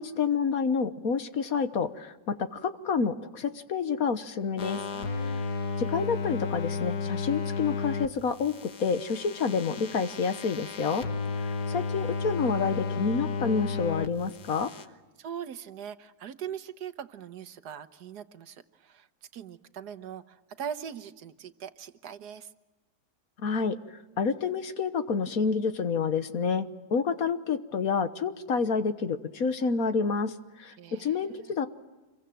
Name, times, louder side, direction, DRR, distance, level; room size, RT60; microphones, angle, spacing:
voice 1, 0.0-4.8 5.8-11.0 11.4-14.7 23.4-31.7, left 5 dB, 65° left, 10 dB, 1.6 m, -29 dB
sound 1, 4.6-8.1 8.4-14.1 14.4-14.8, left 4 dB, 85° left, 1.9 m, -33 dB
voice 2, 4.9-5.4 15.2-19.1 19.3-22.5 30.8-31.5, right 8 dB, 90° right, 11 dB, 1.6 m, -41 dB
26.5 x 23.0 x 7.6 m, 1.2 s
omnidirectional pair, 1.7 m